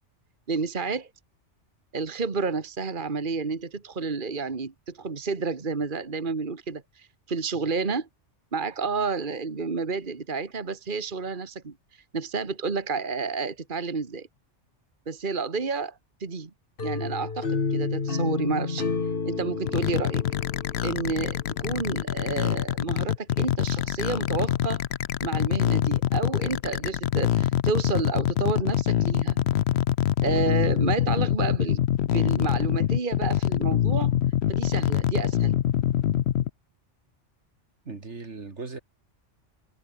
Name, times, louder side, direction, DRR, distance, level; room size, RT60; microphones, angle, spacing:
voice 1, 0.5-1.1 1.9-8.1 8.5-11.7 12.1-14.3 15.1-16.5 16.8-18.9 19.2-20.2 20.8-24.8 25.2-29.4 30.2-34.1 34.5-35.6, right 4 dB, 45° right, 1.9 m, -30 dB
sound 1, 16.8-21.7, left 4 dB, 50° left, 1.9 m, -30 dB
sound 2, 19.7-36.5, left 11 dB, 65° left, 0.9 m, -25 dB
voice 2, 37.8-38.8, right 4 dB, 70° right, 2.8 m, -38 dB
omnidirectional pair, 1.2 m